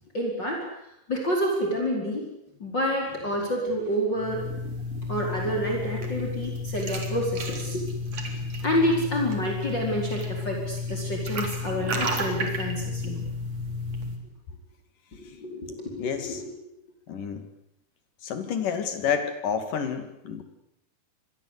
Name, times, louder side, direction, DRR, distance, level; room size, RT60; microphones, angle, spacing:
voice 1, 0.1-0.7 1.1-2.3 2.6-4.5 5.1-7.8 8.2-13.2 15.2-16.5, equal, 25° left, 0 dB, 5.2 m, -28 dB
sound 1, 4.1-14.2, left 2 dB, 40° right, 4.5 m, -32 dB
voice 2, 16.0-16.4 17.1-17.5 18.2-20.4, left 7 dB, 60° left, 8 dB, 3.8 m, -29 dB
27.5 x 21.5 x 8.3 m, 0.78 s
omnidirectional pair, 4.5 m